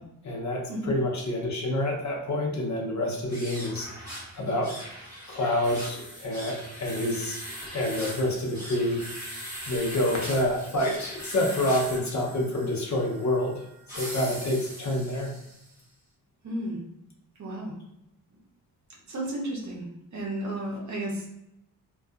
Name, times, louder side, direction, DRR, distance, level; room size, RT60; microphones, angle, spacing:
voice 1, 0.2-3.9 4.3-4.7 5.3-7.4 7.7-9.0 9.7-15.3, left 1 dB, 50° left, -1 dB, 0.7 m, -28 dB
sound 1, 3.3-15.7, equal, 10° right, 1.1 m, -40 dB
voice 2, 16.4-16.8 17.4-17.8 19.1-19.9 20.1-21.3, right 1 dB, 50° right, -2 dB, 0.7 m, -32 dB
2.6 x 2.3 x 2.3 m, 0.83 s
cardioid pair, 105°, 37 cm